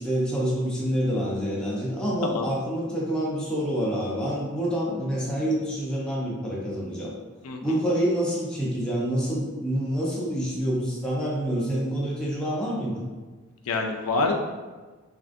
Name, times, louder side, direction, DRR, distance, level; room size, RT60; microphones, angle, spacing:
voice 1, 0.0-7.1 7.6-13.0, equal, 5° left, -6 dB, 0.6 m, -27 dB
voice 2, 7.4-7.8 13.7-14.3, left 3 dB, 80° left, 2 dB, 0.4 m, -26 dB
3.5 x 2.4 x 2.5 m, 1.3 s
head